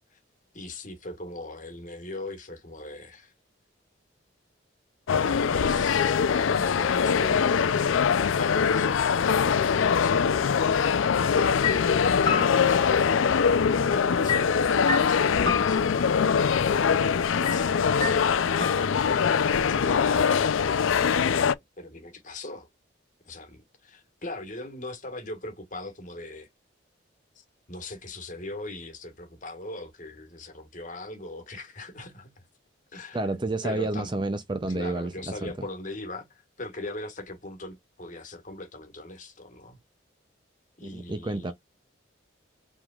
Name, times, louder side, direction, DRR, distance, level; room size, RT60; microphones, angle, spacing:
voice 1, 0.5-3.3 5.6-6.1 6.5-7.7 8.4-9.0 11.8-13.4 13.8-16.7 17.3-18.5 18.9-20.5 21.2-22.7 23.2-26.5 27.3-32.5 32.9-33.3 33.6-34.1 34.7-39.8 40.8-41.5, left 2 dB, 40° left, 1.4 m, -40 dB
sound 1, 5.1-21.5, left 6 dB, 85° left, 0.4 m, -23 dB
sound 2, 11.6-13.5 14.3-16.3 17.4-17.6 18.0-19.3, left 5 dB, 20° left, 1.1 m, -31 dB
voice 2, 33.1-35.1 35.4-35.5 40.8-41.5, right 2 dB, 25° right, 0.5 m, -29 dB
4.9 x 3.7 x 2.3 m
head